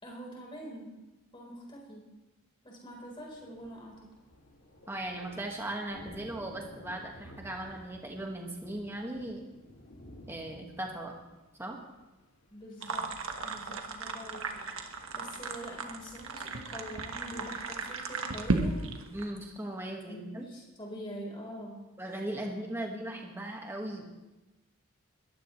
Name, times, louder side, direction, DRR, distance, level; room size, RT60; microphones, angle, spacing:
voice 1, 0.0-1.0 1.3-2.1 2.6-4.1 12.5-13.1 13.4-18.8 20.1-21.9 22.4-22.5, equal, 20° left, -2 dB, 4.1 m, -45 dB
Thunder, 2.9-12.9, equal, 70° left, 2.3 m, -54 dB
voice 2, 4.9-9.5 10.3-11.1 11.6-11.8 19.1-20.4 22.0-24.1, right 1 dB, 10° right, 0 dB, 1.7 m, -38 dB
sound 1, 12.8-19.3, right 3 dB, 65° right, 1.4 m, -35 dB
22.0 x 15.0 x 3.2 m, 1.0 s
head